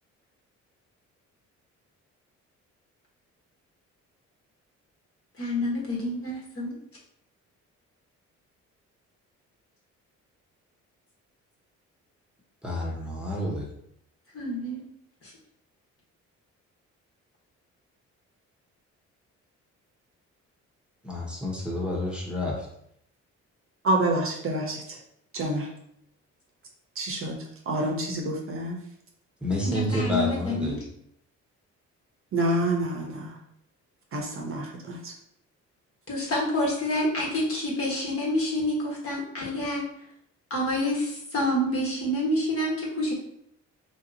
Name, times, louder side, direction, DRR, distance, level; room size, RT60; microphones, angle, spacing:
voice 1, 5.4-6.7 14.3-14.8 15.2-15.3 29.6-30.7 36.1-39.8 40.5-43.1, left 1 dB, 50° left, -3 dB, 1.3 m, -28 dB
voice 2, 12.6-13.7 21.0-22.7 29.4-30.8, left 1 dB, 5° right, -2 dB, 0.9 m, -29 dB
voice 3, 23.8-25.0 25.3-25.7 27.0-27.3 27.7-28.8 32.3-33.3 34.1-35.1, right 1 dB, 45° right, 1 dB, 0.7 m, -27 dB
3.5 x 2.8 x 2.6 m, 0.73 s
cardioid pair, 90°, 30 cm